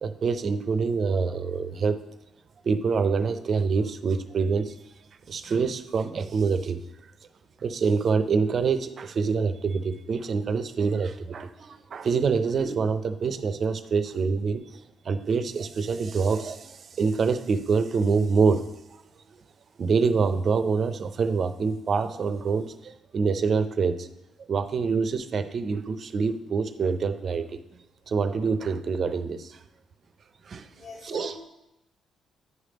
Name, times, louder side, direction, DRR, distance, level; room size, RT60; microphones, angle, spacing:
voice 1, 0.0-2.0 2.6-4.8 5.3-6.8 7.6-18.7 19.8-24.1 24.5-27.6 28.1-29.6 30.4-30.7 31.0-31.4, right 5 dB, 50° right, 11 dB, 0.5 m, -26 dB
voice 2, 30.7-31.5, left 3 dB, 60° left, -2 dB, 2.4 m, -42 dB
9.6 x 3.3 x 5.1 m, 0.88 s
cardioid pair, 90°, 0 cm